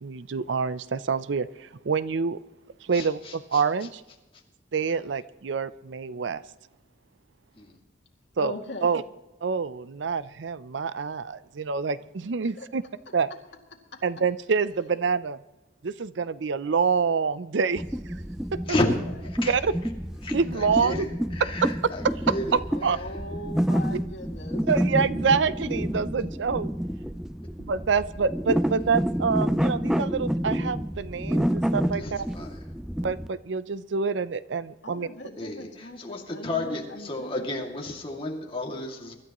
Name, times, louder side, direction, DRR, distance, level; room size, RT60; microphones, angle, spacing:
voice 1, 0.0-2.4 2.8-4.0 4.7-6.4 8.4-8.5 8.8-9.0 9.4-12.8 13.1-13.3 14.0-15.4 15.8-17.8 19.5-19.7 20.3-21.1 21.6-22.1 22.5-23.0 23.9-24.0 24.7-26.7 27.6-32.3 33.0-35.1, right 5 dB, 75° right, 16 dB, 0.5 m, -26 dB
voice 2, 2.9-3.6 7.6-7.7 18.7-18.9 19.2-19.5 20.2-21.1 21.3-22.6 32.0-32.6 35.4-39.1, left 2 dB, 30° left, 0 dB, 2.3 m, -32 dB
voice 3, 8.4-9.0 12.4-12.7 14.4-14.9 18.8-19.1 22.1-24.7 34.8-37.7, left 1 dB, 75° left, 3 dB, 2.3 m, -41 dB
sound 1, 17.8-33.3, equal, 5° right, 0.4 m, -29 dB
24.5 x 12.5 x 3.0 m, 1.0 s
head